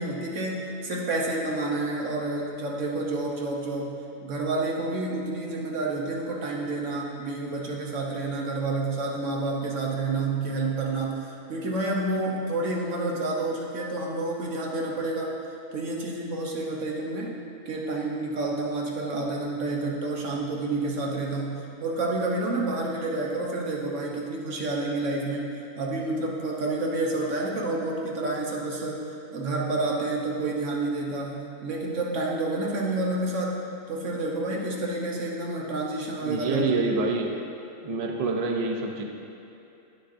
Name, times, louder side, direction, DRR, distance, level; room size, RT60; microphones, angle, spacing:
voice 1, 0.0-3.9 4.2-15.4 15.7-17.4 17.7-29.0 29.3-33.5 33.9-37.0, right 2 dB, 70° right, -2 dB, 1.3 m, -29 dB
voice 2, 36.2-37.4 37.8-39.0, right 3 dB, 50° right, 2 dB, 0.4 m, -27 dB
9.7 x 6.5 x 2.5 m, 2.8 s
omnidirectional pair, 1.4 m